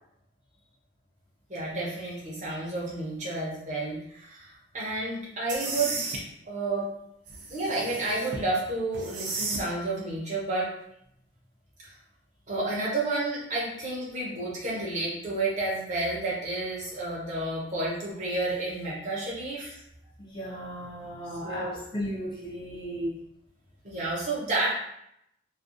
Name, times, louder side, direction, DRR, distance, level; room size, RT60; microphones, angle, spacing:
voice 1, 1.5-6.9 7.5-10.7 12.5-19.7 21.4-21.8 23.8-24.7, right 2 dB, 40° right, -6 dB, 0.8 m, -31 dB
sound 1, 5.5-6.2 7.3-8.4 8.9-9.7, right 3 dB, 70° right, 0.5 m, -34 dB
voice 2, 20.3-23.2, equal, 25° left, -5 dB, 0.5 m, -35 dB
2.4 x 2.2 x 2.5 m, 0.76 s
head